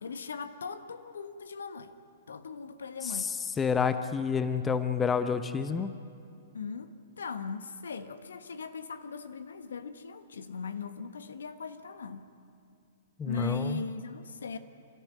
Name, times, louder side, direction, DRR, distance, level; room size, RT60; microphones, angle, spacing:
voice 1, 0.0-1.9 2.3-3.3 6.5-12.3 13.2-14.6, left 4 dB, 70° left, 10 dB, 1.2 m, -39 dB
voice 2, 3.6-5.9 13.2-13.8, left 6 dB, 15° left, 10 dB, 0.8 m, -29 dB
28.5 x 13.5 x 9.4 m, 2.4 s
figure-of-eight pair, 110°, 0 cm